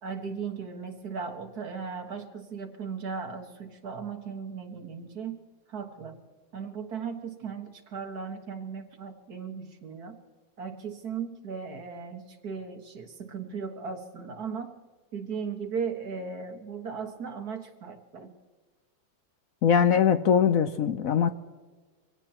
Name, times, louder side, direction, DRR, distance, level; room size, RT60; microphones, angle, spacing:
voice 1, 0.0-5.4 5.7-6.2 6.5-10.2 10.6-14.7 15.1-18.3, right 6 dB, 65° right, 5 dB, 2.0 m, -37 dB
voice 2, 19.6-21.3, left 7 dB, 65° left, 10 dB, 0.9 m, -22 dB
25.0 x 17.0 x 2.9 m, 1.4 s
omnidirectional pair, 1.8 m